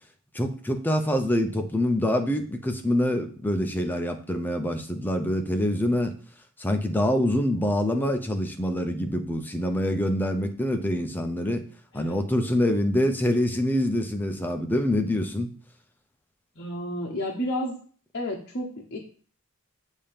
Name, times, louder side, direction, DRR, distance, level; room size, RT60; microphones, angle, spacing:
voice 1, 0.3-6.1 6.6-11.7 11.9-15.5, left 1 dB, 10° left, 5 dB, 0.5 m, -25 dB
voice 2, 16.6-17.8 18.1-19.0, equal, 55° left, -2 dB, 0.8 m, -31 dB
7.3 x 2.8 x 5.1 m, 0.44 s
head